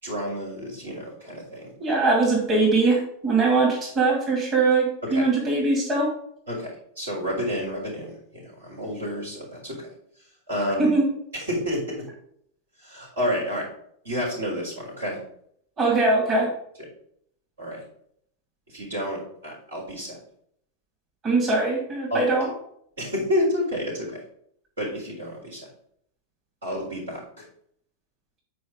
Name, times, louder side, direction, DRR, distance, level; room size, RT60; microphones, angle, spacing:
voice 1, 0.0-1.7 5.1-5.3 6.5-9.9 10.5-10.9 11.3-12.1 12.8-13.6 14.0-15.2 17.6-17.8 18.7-20.2 22.1-22.5 23.0-24.2 24.8-25.7 26.6-27.4, equal, 70° right, -3 dB, 3.9 m, -30 dB
voice 2, 1.8-6.1 10.8-11.1 15.8-16.5 21.2-22.5, right 3 dB, 30° right, -3 dB, 2.8 m, -21 dB
8.6 x 4.9 x 5.2 m, 0.67 s
figure-of-eight pair, 90°, 0 cm